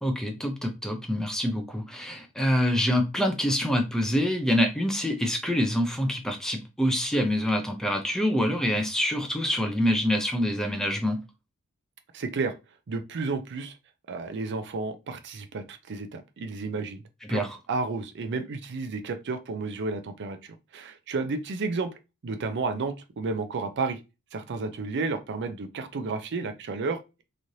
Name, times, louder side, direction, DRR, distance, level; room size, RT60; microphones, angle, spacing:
voice 1, 0.0-11.2 17.3-17.6, equal, ahead, 0.4 m, -26 dB
voice 2, 12.1-12.5 12.9-13.8 14.1-17.0 17.3-21.9 22.2-24.0 24.3-27.2, right 3 dB, 50° right, 0.5 m, -32 dB
3.0 x 2.5 x 2.7 m
head